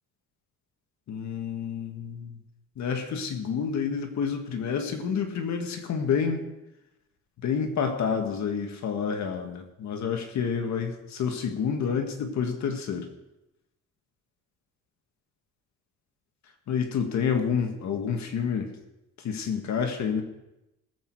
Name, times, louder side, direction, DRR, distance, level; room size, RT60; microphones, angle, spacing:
voice 1, 1.1-2.3 2.8-6.5 7.4-13.1 16.7-18.7 19.2-20.2, left 6 dB, 60° left, 5 dB, 1.8 m, -29 dB
18.5 x 8.2 x 4.7 m, 0.94 s
cardioid pair, 120°, 32 cm